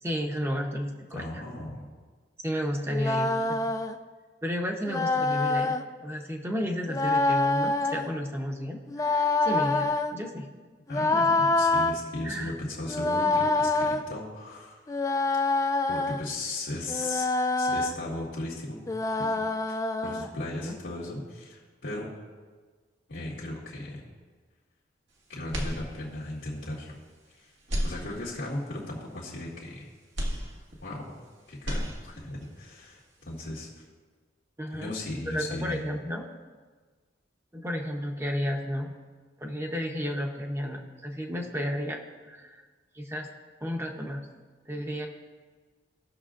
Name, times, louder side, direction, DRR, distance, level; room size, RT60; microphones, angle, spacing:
voice 1, 0.0-1.4 2.4-3.8 4.4-10.5 11.0-11.4 12.2-12.5 20.5-20.8 34.6-34.9 35.3-36.3 37.5-38.9 39.4-42.0 42.3-42.6 42.9-43.3 43.6-44.2 44.7-45.1, equal, 15° right, 1 dB, 0.9 m, -32 dB
voice 2, 1.1-1.9 10.9-14.8 15.9-18.8 19.2-19.4 19.7-22.1 23.1-24.0 25.3-27.0 27.3-27.5 27.8-29.9 30.8-31.2 31.5-33.8 34.7-35.8, left 2 dB, 80° left, -6 dB, 1.8 m, -37 dB
sound 1, 2.9-4.0 4.9-5.8 6.9-8.1 8.9-10.1 10.9-12.0 12.9-14.0 14.9-16.3 16.9-17.9 18.9-20.3, left 2 dB, 20° left, 0.4 m, -26 dB
sound 2, 25.5-26.4 26.8-26.9 27.6-28.6 30.1-31.2 31.5-32.5, equal, 80° right, 1.7 m, -33 dB
18.5 x 6.2 x 2.5 m, 1.4 s
head